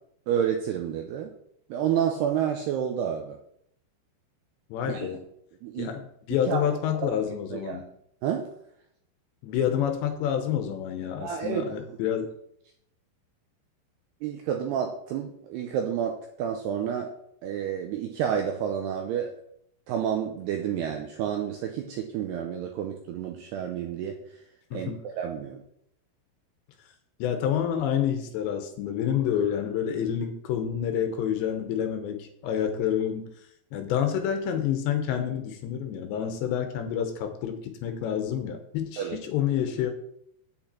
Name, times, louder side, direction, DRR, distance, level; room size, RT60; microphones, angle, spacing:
voice 1, 0.3-1.3 1.7-3.4 4.8-5.2 5.6-5.9 6.3-6.6 6.9-7.1 7.5-7.8 8.2-8.5 11.2-11.7 14.2-17.1 17.4-19.3 19.9-24.4 24.7-25.6 39.0-39.2, right 8 dB, 90° right, 3 dB, 2.3 m, -30 dB
voice 2, 4.7-5.2 5.8-6.0 6.3-7.8 9.4-12.3 24.7-25.0 27.2-33.2 33.7-39.9, left 9 dB, 75° left, 6 dB, 2.9 m, -28 dB
8.7 x 8.3 x 4.3 m, 0.73 s
omnidirectional pair, 5.6 m